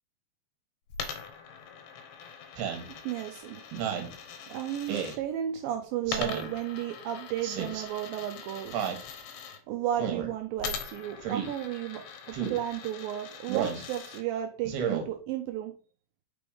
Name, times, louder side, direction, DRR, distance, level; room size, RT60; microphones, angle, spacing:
Coin (dropping), 0.9-5.2 6.0-9.6 10.6-14.2, left 6 dB, 75° left, 2.5 m, -42 dB
Speech synthesizer, 2.6-2.9 3.7-4.1 4.9-5.2 6.1-6.5 7.4-7.8 8.7-9.0 10.0-10.3 11.2-11.5 12.3-12.6 13.5-13.8 14.6-15.0, right 8 dB, 75° right, 2.9 m, -31 dB
voice 1, 3.0-3.6 4.5-8.7 9.7-12.0 12.5-15.7, right 11 dB, 90° right, 5 dB, 2.0 m, -33 dB
6.1 x 3.4 x 4.8 m, 0.38 s
omnidirectional pair, 4.9 m